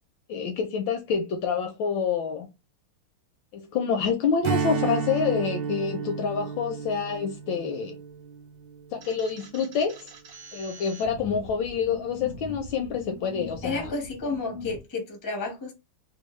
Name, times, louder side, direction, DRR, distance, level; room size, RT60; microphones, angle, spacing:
voice 1, 0.3-2.5 3.5-7.9 8.9-10.1 10.5-13.9, left 6 dB, 75° left, 1.1 m, -27 dB
Strum, 4.4-9.2, right 6 dB, 75° right, 1.3 m, -32 dB
sound 1, 9.0-14.8, left 2 dB, 60° right, 1.0 m, -42 dB
voice 2, 13.6-15.7, left 3 dB, 30° left, 0.4 m, -31 dB
3.6 x 2.2 x 3.0 m
omnidirectional pair, 2.4 m